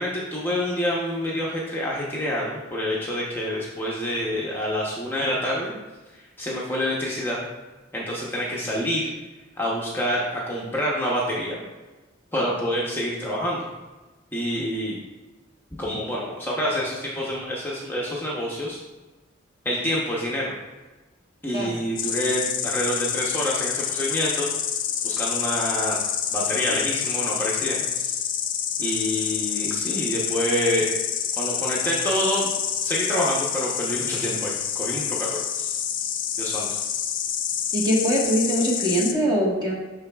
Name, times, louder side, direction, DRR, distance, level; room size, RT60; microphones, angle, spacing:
voice 1, 0.0-5.7 6.4-7.4 7.9-9.1 9.6-11.6 12.3-13.6 14.3-15.0 15.8-18.8 19.6-20.5 21.4-24.5 25.0-26.0 26.3-28.2 28.8-30.9 31.4-32.5 32.8-35.7 36.4-36.8, equal, 10° left, -5 dB, 0.8 m, -27 dB
Insect, 22.0-39.1, left 8 dB, 45° left, 0.5 m, -27 dB
voice 2, 37.7-39.7, equal, 20° right, -3 dB, 1.3 m, -22 dB
11.5 x 4.0 x 2.3 m, 1.2 s
head